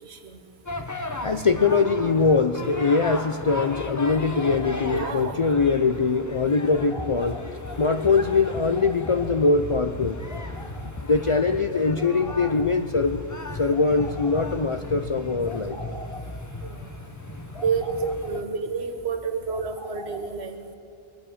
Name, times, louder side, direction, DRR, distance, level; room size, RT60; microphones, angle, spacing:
voice 1, 0.0-0.4 4.9-5.4 16.6-16.8 17.6-20.6, right 5 dB, 85° right, 7 dB, 1.4 m, -29 dB
sound 1, 0.7-18.4, left 2 dB, 20° left, 0.8 m, -35 dB
voice 2, 1.2-13.2 13.6-16.2 17.5-17.6 19.5-20.2, left 4 dB, 50° left, 7 dB, 0.4 m, -23 dB
22.5 x 8.4 x 7.1 m, 2.5 s
omnidirectional pair, 1.1 m